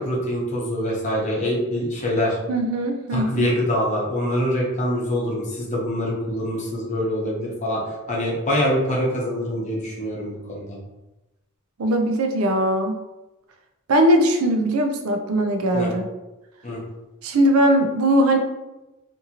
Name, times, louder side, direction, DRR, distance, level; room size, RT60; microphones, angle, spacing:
voice 1, 0.0-2.4 3.1-7.8 8.1-10.8 15.7-15.9 16.6-16.8, equal, 35° left, -4 dB, 0.7 m, -24 dB
voice 2, 2.5-3.5 11.8-13.0 13.9-16.0 17.2-18.4, right 1 dB, 75° right, 4 dB, 0.4 m, -20 dB
2.7 x 2.5 x 2.8 m, 1.0 s
head